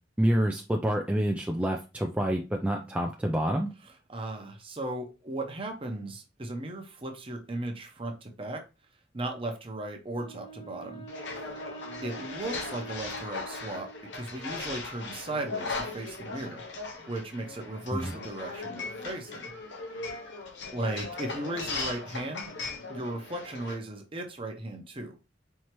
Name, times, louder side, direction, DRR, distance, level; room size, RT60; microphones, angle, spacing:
voice 1, 0.2-3.7 17.9-18.1, equal, 5° right, 1 dB, 0.4 m, -27 dB
voice 2, 4.1-8.6 9.1-11.0 12.0-16.6 17.1-19.5 20.7-22.5 22.9-25.2, right 1 dB, 30° right, 3 dB, 0.8 m, -36 dB
Wind instrument woodwind instrument, 10.1-14.4, right 3 dB, 30° left, 1.0 m, -46 dB
sound 1, 11.1-23.7, left 3 dB, 70° left, 0.8 m, -38 dB
4.6 x 2.8 x 3.0 m, 0.30 s
head